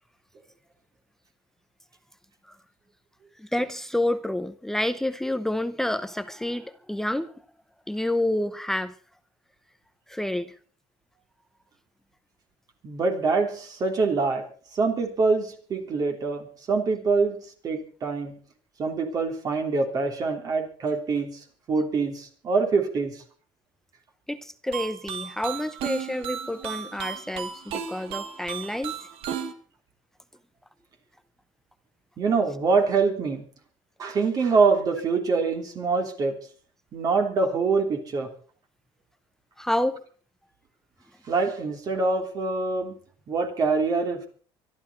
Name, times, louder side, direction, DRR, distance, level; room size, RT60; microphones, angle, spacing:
voice 1, 3.4-7.3 7.9-8.9 10.1-10.5 24.3-28.9 39.6-40.0, left 1 dB, 5° left, 11 dB, 0.7 m, -29 dB
voice 2, 12.8-14.4 14.7-17.4 17.6-18.3 18.8-23.2 32.2-33.4 34.0-36.3 36.9-38.3 41.3-42.9 43.3-44.3, right 4 dB, 35° right, 4 dB, 3.2 m, -25 dB
sound 1, 24.7-29.5, right 9 dB, 65° right, 2.0 m, -34 dB
24.0 x 12.0 x 4.2 m, 0.44 s
cardioid pair, 140°, 10 cm